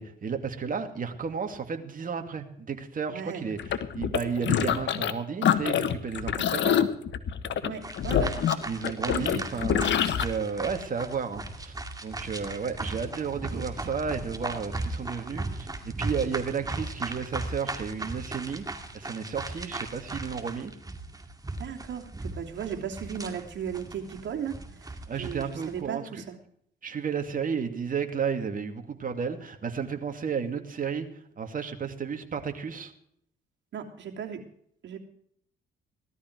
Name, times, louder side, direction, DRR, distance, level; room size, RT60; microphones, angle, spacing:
voice 1, 0.0-6.9 8.6-11.7 12.0-18.7 18.9-20.7 25.1-26.2 26.8-32.9, right 6 dB, 45° right, 6 dB, 2.5 m, -33 dB
voice 2, 3.1-3.5 7.6-8.4 9.1-9.3 13.5-13.6 21.6-26.4 33.7-34.4 34.8-35.0, right 7 dB, 65° right, 1 dB, 3.0 m, -36 dB
sound 1, 3.6-5.1 5.4-10.2, left 9 dB, 65° left, 1.4 m, -26 dB
sound 2, 7.8-25.8, right 2 dB, 20° right, 2.3 m, -37 dB
17.5 x 12.5 x 4.7 m, 0.68 s
cardioid pair, 90°, 20 cm